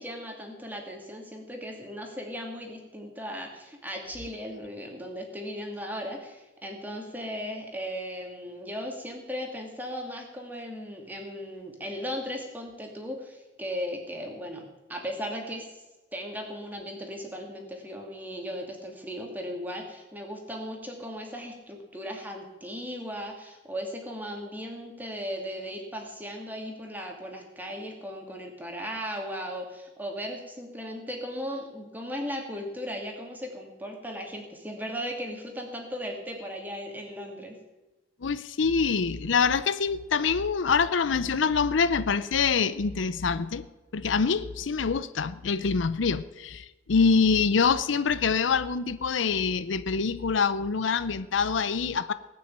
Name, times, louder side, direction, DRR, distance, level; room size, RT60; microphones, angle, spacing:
voice 1, 0.0-15.8 16.1-37.6, equal, 10° right, 1 dB, 2.4 m, -37 dB
voice 2, 38.2-43.7 43.9-52.1, left 5 dB, 80° left, 14 dB, 0.6 m, -25 dB
18.5 x 6.3 x 8.8 m, 1.1 s
head